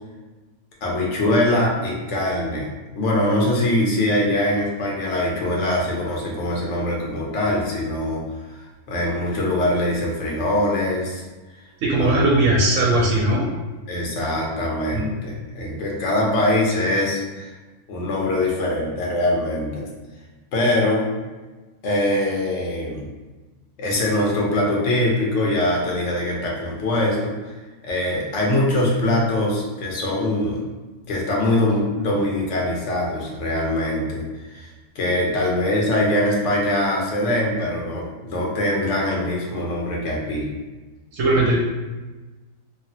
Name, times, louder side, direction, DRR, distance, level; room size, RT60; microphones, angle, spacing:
voice 1, 0.8-2.7 3.0-8.6 8.9-11.2 12.0-12.2 13.9-17.5 17.9-19.8 20.5-21.1 21.8-23.1 23.8-27.3 27.8-30.6 31.1-34.7 35.0-40.5, left 1 dB, 60° left, -2 dB, 1.0 m, -22 dB
voice 2, 11.8-13.5 14.9-15.1 41.1-41.6, right 2 dB, 70° right, -3 dB, 0.8 m, -19 dB
3.2 x 2.3 x 2.7 m, 1.2 s
omnidirectional pair, 1.6 m